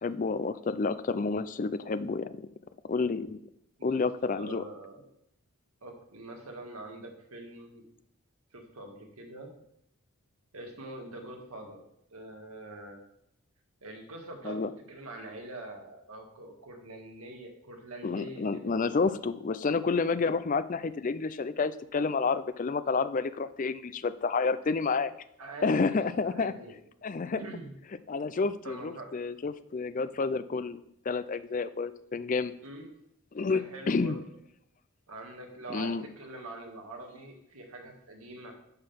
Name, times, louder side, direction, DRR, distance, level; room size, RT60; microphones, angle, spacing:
voice 1, 0.0-2.5 2.9-3.4 3.8-4.6 14.4-14.7 18.0-25.1 25.6-26.5 27.0-27.5 28.1-30.8 31.1-32.5 33.3-34.2 35.7-36.0, left 4 dB, 35° left, 14 dB, 0.4 m, -29 dB
voice 2, 4.3-5.1 5.8-7.8 8.5-9.5 10.5-11.8 12.1-13.0 13.8-14.6 14.9-18.8 25.4-26.8 27.4-27.7 28.6-29.1 32.6-32.9 33.4-34.2 35.1-38.5, right 1 dB, 80° right, 2 dB, 1.7 m, -44 dB
9.7 x 3.9 x 6.8 m, 0.76 s
head